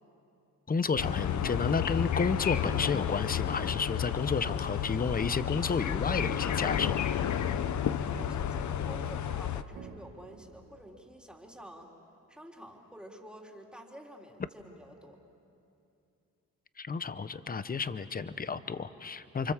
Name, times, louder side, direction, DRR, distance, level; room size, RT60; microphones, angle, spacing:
voice 1, 0.7-7.0 16.8-19.5, left 5 dB, 30° left, 13 dB, 1.0 m, -31 dB
sound 1, 1.0-9.6, left 9 dB, 65° left, 0.9 m, -31 dB
sound 2, 4.4-5.5 6.1-7.5 8.1-9.2 9.8-10.8, right 8 dB, 80° right, 1.5 m, -52 dB
voice 2, 8.0-11.9 12.3-15.2, equal, 5° right, 0 dB, 3.5 m, -49 dB
30.0 x 24.5 x 7.4 m, 2.7 s
cardioid pair, 80°, 31 cm